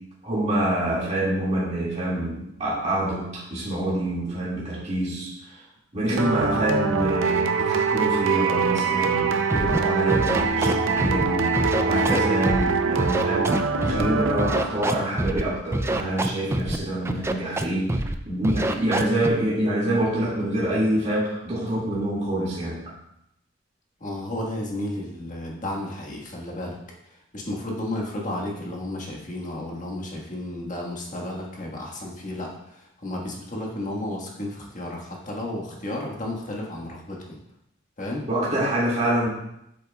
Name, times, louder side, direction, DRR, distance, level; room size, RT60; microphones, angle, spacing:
voice 1, 0.2-5.6 5.9-17.9 18.3-22.8 38.3-39.3, right 1 dB, 35° right, -7 dB, 2.1 m, -26 dB
sound 1, 6.2-15.1, right 5 dB, 85° right, 0.6 m, -24 dB
Scratching (performance technique), 9.5-9.8 10.1-11.2 11.5-12.6 13.0-14.1 14.4-15.4 15.7-16.8 17.0-17.6 17.9-18.1 18.4-19.3, right 1 dB, 15° right, 0.3 m, -25 dB
voice 2, 24.0-26.8 27.1-37.4 38.0-38.3, left 1 dB, 40° left, -1 dB, 1.5 m, -33 dB
8.4 x 6.9 x 2.3 m, 0.80 s
head